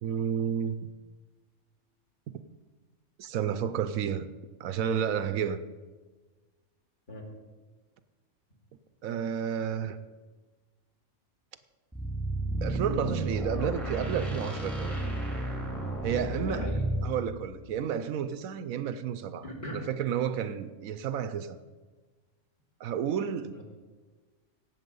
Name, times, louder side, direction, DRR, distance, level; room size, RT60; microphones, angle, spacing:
voice 1, 0.0-0.8 3.2-4.3 4.6-5.6 9.0-10.0 12.6-15.0 16.0-16.7 17.0-21.6 22.8-23.6, right 8 dB, 80° right, 1.1 m, -31 dB
sound 1, 11.9-17.2, right 1 dB, ahead, 2.1 m, -32 dB
voice 2, 16.3-16.8 19.4-19.8 23.5-23.6, left 1 dB, 35° left, 2.5 m, -39 dB
17.5 x 7.2 x 5.3 m
omnidirectional pair, 1.4 m